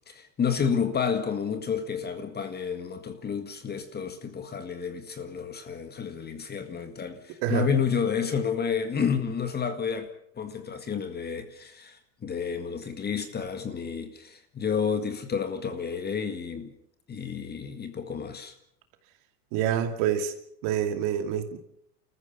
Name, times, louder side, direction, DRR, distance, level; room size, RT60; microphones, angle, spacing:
voice 1, 0.1-10.1 10.4-16.7 17.1-18.5, left 6 dB, 20° left, 1.9 m, -30 dB
voice 2, 19.5-20.3 20.6-21.6, right 9 dB, 50° right, 2.7 m, -27 dB
29.0 x 14.5 x 7.0 m
supercardioid pair, 125°, 47 cm